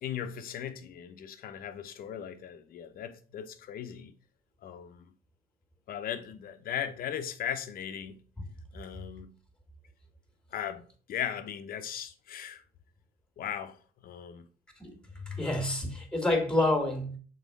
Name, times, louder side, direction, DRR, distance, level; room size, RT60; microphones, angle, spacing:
voice 1, 0.0-4.1 4.6-5.0 5.9-8.2 8.7-9.3 10.5-12.6 13.4-13.8 14.0-14.5, left 9 dB, 60° left, 0.8 m, -38 dB
voice 2, 15.3-17.2, left 2 dB, 5° left, 1.9 m, -28 dB
6.3 x 4.3 x 4.1 m
cardioid pair, 110°, 17 cm